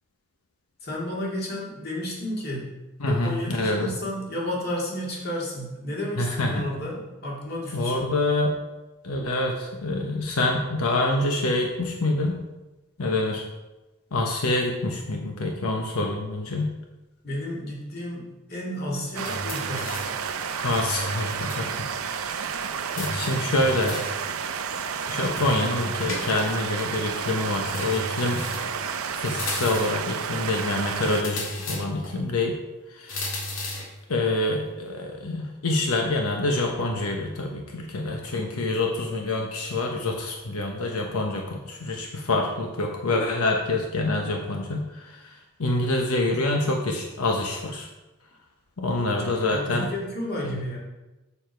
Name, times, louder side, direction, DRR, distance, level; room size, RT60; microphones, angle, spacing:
voice 1, 0.8-2.7 3.1-8.1 17.2-19.9 49.2-50.8, left 1 dB, 45° left, -4 dB, 2.2 m, -32 dB
voice 2, 3.0-3.9 6.2-6.7 7.7-8.6 9.0-12.4 13.0-13.4 14.1-16.7 20.6-22.6 23.0-24.0 25.1-28.4 29.1-32.6 32.9-33.3 34.1-47.9 48.8-49.9 50.4-50.6, left 2 dB, 90° left, 1 dB, 1.0 m, -26 dB
sound 1, 19.1-31.2, right 6 dB, 80° right, 0.6 m, -31 dB
sound 2, 19.2-20.2 20.7-21.7 21.9-22.0 23.0-24.2 25.4-26.6 27.7-28.8 29.3-30.1 31.1-32.2 33.1-34.0, left 1 dB, 65° left, 1.9 m, -35 dB
7.1 x 7.0 x 4.5 m, 1.1 s
head